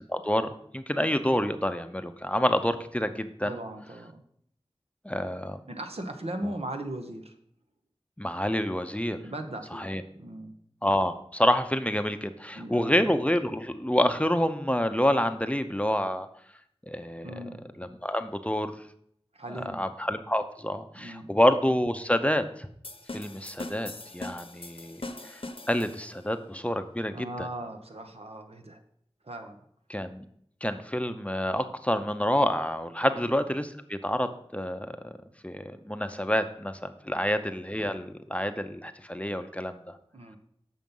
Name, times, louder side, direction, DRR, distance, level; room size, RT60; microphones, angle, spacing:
voice 1, 0.1-3.6 5.0-5.6 6.4-6.5 8.2-9.2 9.7-10.0 10.8-16.3 16.9-17.3 17.8-18.7 19.5-22.4 23.1-25.0 25.3-25.4 25.7-27.5 29.9-30.2 30.6-35.1 35.4-36.8 37.0-40.0, equal, 10° left, 8 dB, 0.6 m, -28 dB
voice 2, 3.4-4.2 5.7-7.3 9.2-9.9 10.2-10.5 12.5-13.0 17.2-17.6 19.4-19.8 20.9-21.3 27.1-28.8 29.3-29.6 33.0-33.2 40.1-40.4, right 1 dB, 75° right, 5 dB, 1.0 m, -38 dB
sound 1, 22.8-26.3, left 2 dB, 60° left, 0.8 m, -41 dB
7.5 x 5.7 x 5.4 m, 0.68 s
wide cardioid pair, 50°, 10 cm